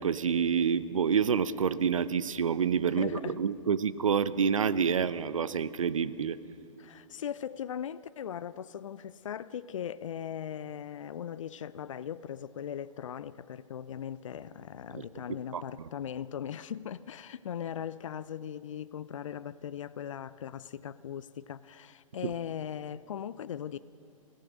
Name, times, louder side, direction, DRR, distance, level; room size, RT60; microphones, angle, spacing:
voice 1, 0.0-6.4 14.9-15.0 15.5-15.9, right 7 dB, 75° right, 16 dB, 0.8 m, -28 dB
voice 2, 3.0-3.4 6.8-23.8, left 9 dB, 70° left, 16 dB, 0.6 m, -39 dB
26.0 x 16.5 x 6.3 m, 2.6 s
figure-of-eight pair, 115°, 17 cm